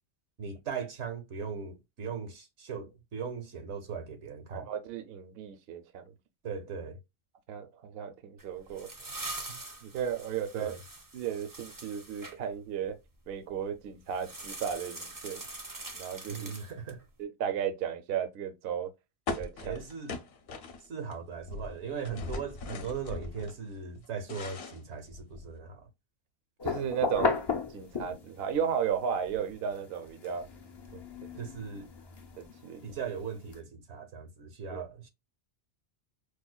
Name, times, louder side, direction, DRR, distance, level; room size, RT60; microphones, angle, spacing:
voice 1, 0.4-4.7 6.4-7.0 10.5-10.8 16.3-17.0 19.6-20.2 20.9-25.9 31.4-31.9 32.8-35.1, right 6 dB, 85° right, 1.2 m, -39 dB
voice 2, 4.5-6.0 7.5-8.9 9.5-10.8 11.1-13.0 13.3-15.4 15.9-16.5 17.2-18.9 19.4-19.8 26.6-27.4 27.7-30.5 30.9-31.5 32.4-32.8 34.7-34.8, right 8 dB, 65° right, 0.8 m, -35 dB
sound 1, 8.4-12.4 14.1-17.0, right 2 dB, 30° right, 0.4 m, -43 dB
sound 2, 19.3-21.1 21.4-23.6 24.0-25.5, left 3 dB, 65° left, 0.8 m, -39 dB
sound 3, 26.6-28.5 28.9-33.6, left 4 dB, 40° left, 0.4 m, -35 dB
4.7 x 2.1 x 2.2 m
omnidirectional pair, 1.1 m